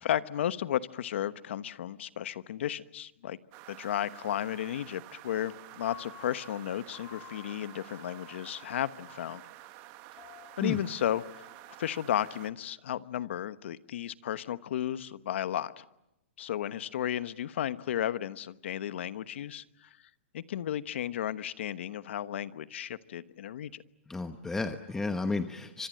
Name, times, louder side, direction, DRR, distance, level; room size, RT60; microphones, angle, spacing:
voice 1, 0.0-3.4 3.7-9.4 10.6-11.5 11.8-15.8 16.4-19.9 20.3-23.8, left 11 dB, 75° left, 14 dB, 1.1 m, -34 dB
sound 1, 3.5-12.5, right 18 dB, 40° right, 1.3 m, -50 dB
Piano, 5.9-12.0, left 13 dB, 30° left, 3.2 m, -53 dB
voice 2, 24.1-25.9, left 3 dB, 5° left, 8 dB, 1.0 m, -32 dB
28.0 x 25.5 x 7.7 m, 0.91 s
hypercardioid pair, 145°, 7 cm